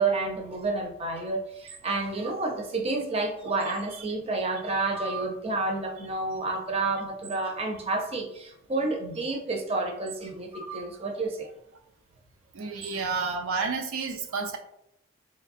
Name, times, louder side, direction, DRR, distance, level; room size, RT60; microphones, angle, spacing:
voice 1, 0.0-11.5, right 3 dB, 30° right, 1 dB, 0.6 m, -30 dB
voice 2, 12.5-14.6, right 4 dB, 70° right, 4 dB, 0.4 m, -30 dB
4.0 x 3.2 x 2.6 m, 0.78 s
head